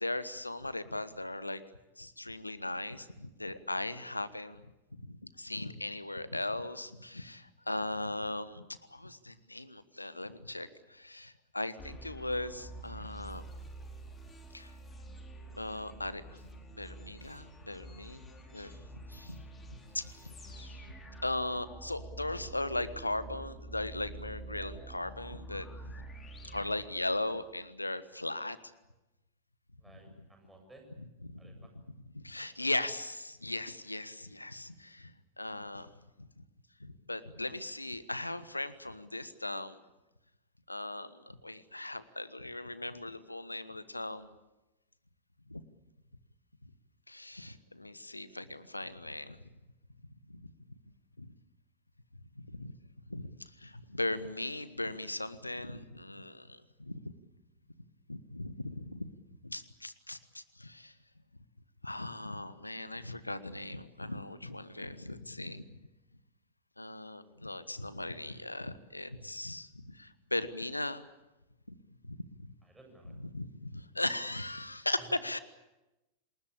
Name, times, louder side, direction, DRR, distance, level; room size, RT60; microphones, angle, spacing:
voice 1, 0.0-1.6 2.0-4.6 4.9-8.6 8.9-13.5 14.5-14.7 15.6-16.4 16.8-20.8 21.2-25.9 26.5-28.6 31.0-31.8 32.1-35.9 36.2-36.4 36.8-39.8 40.7-44.3 45.5-45.6 46.6-46.7 47.1-49.4 50.3-50.5 51.2-51.3 52.4-52.8 53.1-57.1 58.1-59.1 59.4-60.9 61.8-65.8 66.8-71.0 71.7-71.8 72.0-72.5 73.1-75.4, left 2 dB, 85° left, 15 dB, 1.3 m, -38 dB
sound 1, 11.8-27.4, right 2 dB, 15° left, 4.7 m, -48 dB
voice 2, 29.8-30.8 31.4-31.7 72.6-73.1, right 2 dB, 10° right, 3 dB, 8.0 m, -57 dB
28.5 x 20.0 x 8.6 m, 1.0 s
figure-of-eight pair, 90°, 0 cm